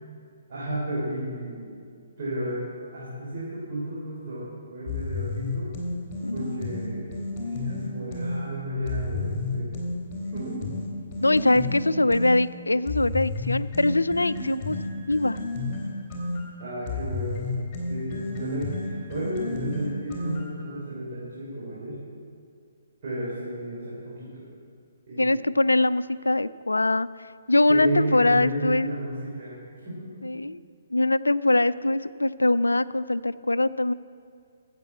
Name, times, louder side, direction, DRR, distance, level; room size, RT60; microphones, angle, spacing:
voice 1, 0.5-1.7 2.2-5.7 6.3-9.8 10.3-10.7 11.2-11.7 16.6-17.5 17.9-22.0 23.0-24.4 25.1-25.4 27.7-30.1, right 1 dB, 45° right, -8 dB, 4.0 m, -33 dB
sound 1, 4.9-8.4 8.9-12.4 12.9-20.7, left 3 dB, 25° left, 3.2 m, -31 dB
voice 2, 6.2-6.7 11.2-14.8 15.1-15.4 25.2-28.9 30.2-30.6 30.9-33.9, left 2 dB, 80° left, 17 dB, 0.3 m, -23 dB
13.0 x 8.2 x 7.5 m, 2.3 s
figure-of-eight pair, 130°, 0 cm